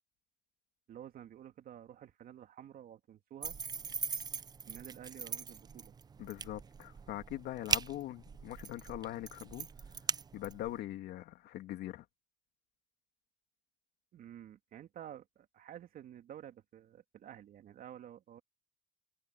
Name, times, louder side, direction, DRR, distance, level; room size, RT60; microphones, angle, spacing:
voice 1, 0.9-3.6 4.7-6.0 14.1-18.4, right 10 dB, 60° right, 2.7 m, -51 dB
sound 1, 3.4-10.8, right 6 dB, 25° right, 0.4 m, -40 dB
voice 2, 6.2-9.7 10.3-12.1, left 14 dB, 80° left, 2.4 m, -42 dB
cardioid pair, 110°, 17 cm